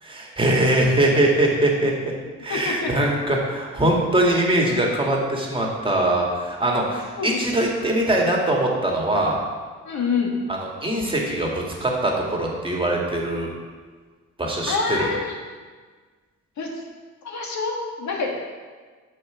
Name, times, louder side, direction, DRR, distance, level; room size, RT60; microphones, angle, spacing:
voice 1, 0.0-2.1 2.4-9.4 10.5-13.5 14.4-15.1, right 1 dB, 15° right, -1 dB, 1.8 m, -22 dB
voice 2, 2.5-3.1 7.2-7.4 9.8-10.4 14.7-15.3 16.6-16.7 17.2-18.4, left 4 dB, 65° left, 0 dB, 1.6 m, -26 dB
5.9 x 5.5 x 6.9 m, 1.5 s
cardioid pair, 90°, 30 cm